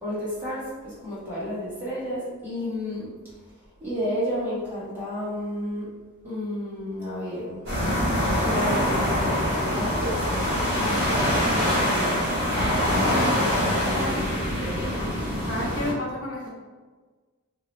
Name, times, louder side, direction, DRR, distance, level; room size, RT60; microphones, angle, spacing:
voice 1, 0.0-3.1 3.8-5.9 6.2-7.6 8.4-10.5 10.8-12.2 12.5-14.9, left 1 dB, 10° right, -11 dB, 1.2 m, -32 dB
sound 1, 7.7-15.9, equal, 50° right, 1.4 m, -24 dB
voice 2, 15.5-16.5, left 1 dB, 65° left, -2 dB, 0.6 m, -30 dB
2.8 x 2.8 x 2.9 m, 1.4 s
head